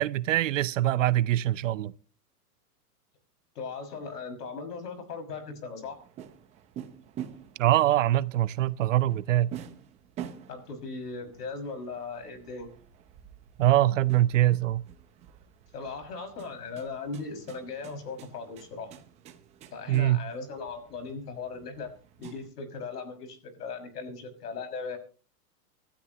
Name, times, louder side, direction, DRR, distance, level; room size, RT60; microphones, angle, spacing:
voice 1, 0.0-1.9 7.6-9.5 13.6-14.8 19.9-20.3, right 14 dB, 55° right, 0.7 m, -23 dB
voice 2, 3.5-6.0 10.5-12.7 15.7-18.9 19.7-25.0, left 4 dB, 80° left, 6.1 m, -38 dB
sound 1, 5.8-22.5, right 10 dB, 15° right, 0.8 m, -47 dB
26.0 x 13.0 x 3.0 m
hypercardioid pair, 160°, 47 cm